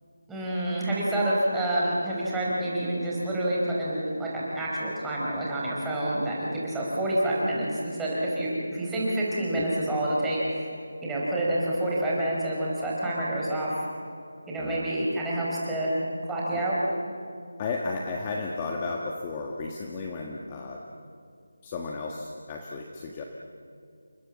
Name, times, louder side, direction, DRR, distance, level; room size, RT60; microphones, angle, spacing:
voice 1, 0.3-10.7 11.0-13.9 14.5-16.0 16.3-16.8, right 1 dB, 5° right, -6 dB, 4.5 m, -28 dB
voice 2, 17.6-20.8 21.6-23.2, left 3 dB, 20° left, 0 dB, 1.4 m, -33 dB
29.5 x 24.5 x 7.4 m, 2.4 s
figure-of-eight pair, 170°, 0 cm